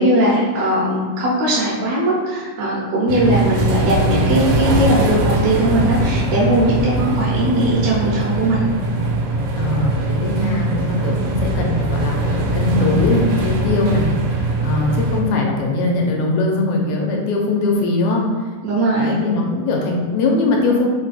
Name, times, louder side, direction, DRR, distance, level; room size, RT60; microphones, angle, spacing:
voice 1, 0.0-8.7 18.6-19.2, right 1 dB, 75° right, -6 dB, 1.8 m, -19 dB
sound 1, 3.1-15.2, right 2 dB, 90° right, 2.1 m, -21 dB
voice 2, 9.6-18.5 18.9-20.9, left 2 dB, 80° left, 0 dB, 1.9 m, -21 dB
4.7 x 2.2 x 4.0 m, 1.5 s
omnidirectional pair, 3.3 m